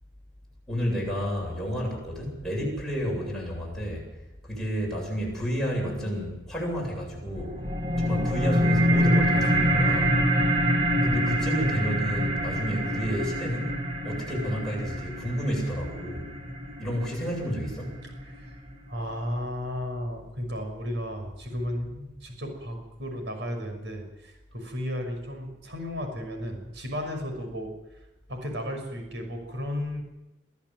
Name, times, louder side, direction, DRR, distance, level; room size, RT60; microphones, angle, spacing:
voice 1, 0.7-4.1 4.4-7.6 8.0-10.1 11.0-16.3 16.8-18.0, equal, ahead, -4 dB, 8.0 m, -31 dB
sound 1, 7.4-18.4, equal, 35° right, 2.6 m, -26 dB
voice 2, 18.9-27.7 28.3-30.0, equal, 75° right, 4 dB, 6.0 m, -34 dB
24.0 x 14.5 x 7.8 m, 0.94 s
head